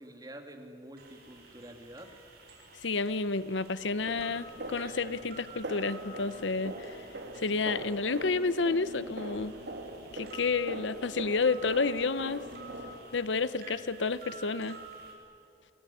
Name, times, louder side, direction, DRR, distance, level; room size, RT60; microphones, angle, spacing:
voice 1, 0.0-2.1, right 1 dB, 20° right, 4 dB, 2.8 m, -47 dB
sound 1, 1.0-15.1, right 3 dB, 55° right, 6.3 m, -51 dB
voice 2, 2.8-7.0 7.3-9.5 10.1-12.4 13.1-14.8, left 4 dB, 80° left, 15 dB, 0.8 m, -30 dB
sound 2, 4.0-13.0, right 1 dB, 70° right, 2.9 m, -42 dB
28.0 x 20.0 x 10.0 m, 2.6 s
head